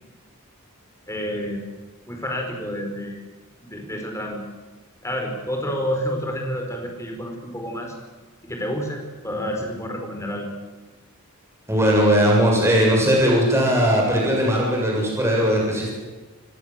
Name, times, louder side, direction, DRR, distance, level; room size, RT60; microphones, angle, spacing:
voice 1, 1.1-1.6 2.1-3.2 3.6-4.4 5.0-7.9 8.4-10.5, equal, 15° left, 2 dB, 5.0 m, -29 dB
voice 2, 11.7-15.9, equal, 10° right, -2 dB, 7.1 m, -19 dB
27.0 x 18.0 x 7.8 m, 1.3 s
head